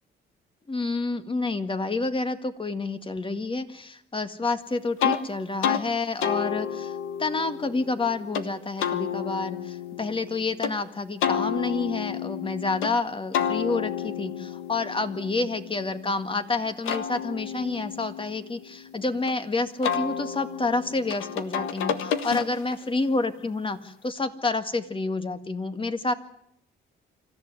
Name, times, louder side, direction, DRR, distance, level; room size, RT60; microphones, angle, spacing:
voice 1, 0.7-26.1, left 3 dB, 25° left, 9 dB, 2.0 m, -29 dB
sound 1, 5.0-5.2 5.6-5.8 6.2-8.5 8.8-10.7 11.2-12.9 13.3-16.2 16.6-19.3 19.8-22.8, left 8 dB, 90° left, 1.6 m, -30 dB
25.5 x 14.5 x 9.6 m, 0.77 s
cardioid pair, 90°, 20 cm